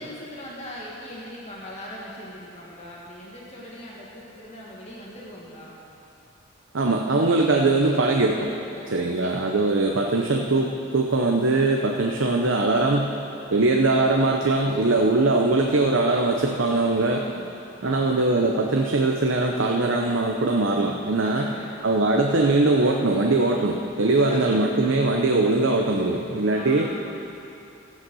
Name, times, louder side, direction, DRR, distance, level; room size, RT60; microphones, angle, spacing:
voice 1, 0.0-5.7 8.7-9.1 9.7-9.8 17.1-18.2 21.2-21.7 24.1-24.7 26.5-26.9, left 1 dB, 30° left, -5 dB, 1.8 m, -40 dB
voice 2, 6.7-8.5 8.9-13.1 13.5-17.2 17.8-21.5 21.8-26.9, right 2 dB, 75° right, 1 dB, 0.8 m, -21 dB
14.5 x 9.2 x 6.3 m, 2.8 s
head